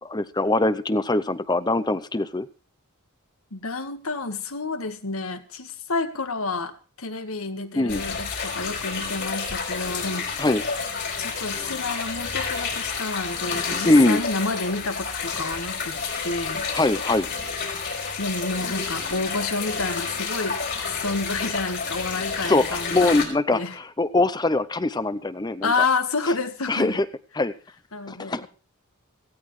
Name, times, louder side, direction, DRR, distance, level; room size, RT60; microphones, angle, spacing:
voice 1, 0.0-2.5 7.8-8.0 10.4-10.6 13.8-14.2 16.7-17.3 22.4-25.7 26.7-27.1 27.4-27.5 28.1-28.5, left 2 dB, 20° left, 15 dB, 0.6 m, -22 dB
voice 2, 3.5-10.4 11.2-16.0 16.2-16.7 18.2-20.6 20.9-23.2 23.5-23.8 25.6-27.0 27.9-28.5, left 3 dB, 70° left, 9 dB, 1.6 m, -29 dB
sound 1, 7.9-23.3, left 5 dB, 50° left, 4.1 m, -30 dB
17.5 x 16.0 x 3.2 m, 0.36 s
head